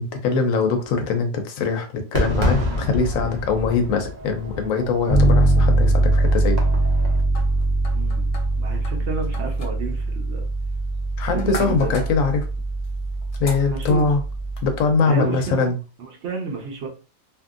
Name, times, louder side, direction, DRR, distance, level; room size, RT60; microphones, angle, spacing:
voice 1, 0.0-6.6 11.2-12.5 13.4-14.2 14.6-15.8, left 4 dB, 85° left, 5 dB, 1.1 m, -22 dB
Fireworks, 2.1-7.2, left 1 dB, 40° right, 0.8 m, -27 dB
Bass guitar, 5.1-14.8, right 1 dB, 15° left, 0.6 m, -22 dB
sound 1, 7.3-14.7, left 2 dB, 65° left, 1.0 m, -41 dB
voice 2, 7.9-10.5 11.2-11.9 13.7-14.0 15.0-15.7 16.0-16.9, right 4 dB, 60° right, 2 dB, 1.1 m, -31 dB
2.9 x 2.6 x 2.4 m, 0.32 s
omnidirectional pair, 1.4 m